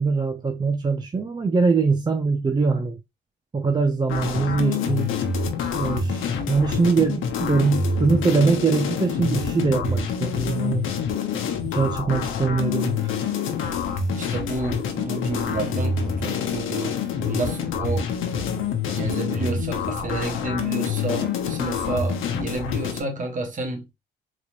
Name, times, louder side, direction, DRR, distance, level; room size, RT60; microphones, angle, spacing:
voice 1, 0.0-3.0 3.5-5.2 5.7-10.9 11.6-13.2, right 4 dB, 20° right, 0.5 m, -22 dB
sound 1, 4.1-23.0, left 6 dB, 85° left, 0.9 m, -26 dB
voice 2, 14.1-18.1 18.9-23.9, right 2 dB, 40° right, 1.4 m, -30 dB
4.1 x 3.0 x 2.5 m
cardioid pair, 90°, 20 cm